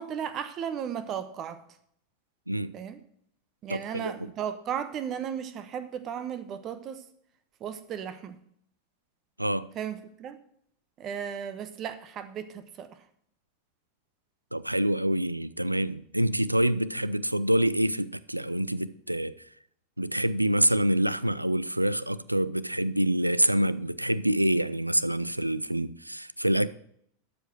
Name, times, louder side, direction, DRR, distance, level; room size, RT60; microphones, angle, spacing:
voice 1, 0.0-1.6 2.7-3.0 3.6-7.0 7.6-8.4 9.7-10.4 11.0-13.0, right 8 dB, 35° right, 1.0 m, -35 dB
voice 2, 3.7-4.3 9.4-9.7 14.5-19.3 20.0-26.7, right 1 dB, 90° right, 0.4 m, -26 dB
12.5 x 5.1 x 6.0 m
figure-of-eight pair, 85°, 0 cm